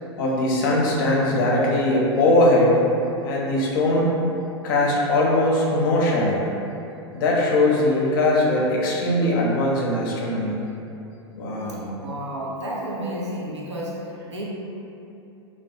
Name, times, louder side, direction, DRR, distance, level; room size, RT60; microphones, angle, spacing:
voice 1, 0.2-2.8 3.2-4.2 4.6-6.4 7.1-10.6 11.4-11.9, left 1 dB, 50° left, -3 dB, 0.5 m, -20 dB
voice 2, 11.9-14.4, equal, 80° right, -4 dB, 0.5 m, -31 dB
2.2 x 2.1 x 2.6 m, 2.8 s
figure-of-eight pair, 95°, 15 cm